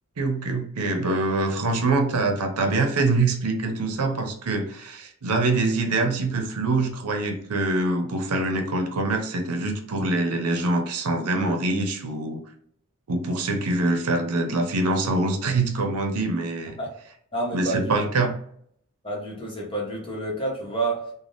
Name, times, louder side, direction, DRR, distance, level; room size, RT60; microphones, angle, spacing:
voice 1, 0.2-12.4 13.1-16.8 17.5-18.3, right 2 dB, 85° right, 5 dB, 0.6 m, -24 dB
voice 2, 17.3-18.0 19.0-21.0, right 2 dB, 25° left, -3 dB, 0.9 m, -29 dB
3.4 x 2.1 x 2.6 m, 0.66 s
head